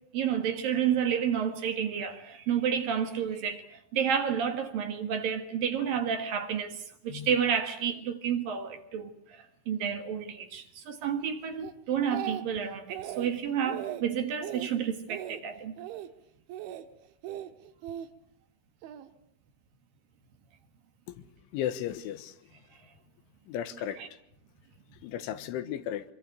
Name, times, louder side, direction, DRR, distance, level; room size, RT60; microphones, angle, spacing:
voice 1, 0.1-15.7 24.0-24.1, right 8 dB, 60° right, 2.9 m, -30 dB
Speech, 11.6-12.6 12.9-13.3 13.7-14.0 14.4-14.7 15.1-15.4 15.8-16.1 16.5-16.9 17.2-18.1 18.8-19.1, right 12 dB, 80° right, 3.8 m, -38 dB
voice 2, 21.5-22.3 23.5-24.0 25.0-26.0, left 10 dB, 85° left, 3.8 m, -34 dB
25.5 x 24.0 x 8.1 m
omnidirectional pair, 5.4 m